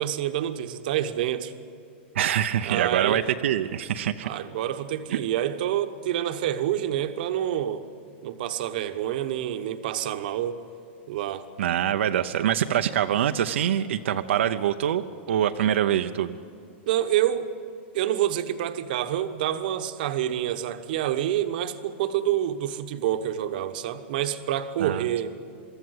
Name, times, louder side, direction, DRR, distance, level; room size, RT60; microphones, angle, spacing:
voice 1, 0.0-1.5 2.6-3.2 4.2-7.8 8.2-10.6 11.1-11.5 16.9-17.5 17.9-25.3, right 11 dB, 50° right, 9 dB, 1.0 m, -27 dB
voice 2, 2.1-4.3 5.1-5.2 11.6-16.4 24.8-25.1, right 10 dB, 80° right, 7 dB, 0.7 m, -24 dB
23.0 x 14.0 x 9.6 m, 2.4 s
supercardioid pair, 175°, 6 cm